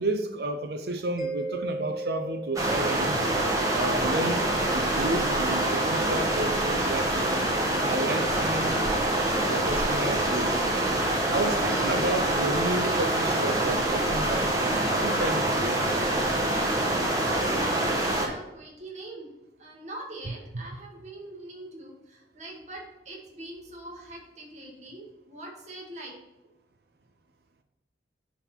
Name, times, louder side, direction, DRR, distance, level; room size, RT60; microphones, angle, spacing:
voice 1, 0.0-3.2 3.7-4.4 4.7-7.3 7.9-8.7 9.4-10.7 11.3-15.9 20.3-20.7, right 2 dB, 60° right, 7 dB, 0.7 m, -31 dB
Mallet percussion, 1.2-3.7, right 3 dB, ahead, 1.6 m, -36 dB
sound 1, 2.6-18.3, right 1 dB, 20° right, 1.4 m, -25 dB
voice 2, 16.8-19.3 19.6-26.1, right 1 dB, 40° right, -2 dB, 2.1 m, -42 dB
10.5 x 4.1 x 4.5 m, 1.0 s
head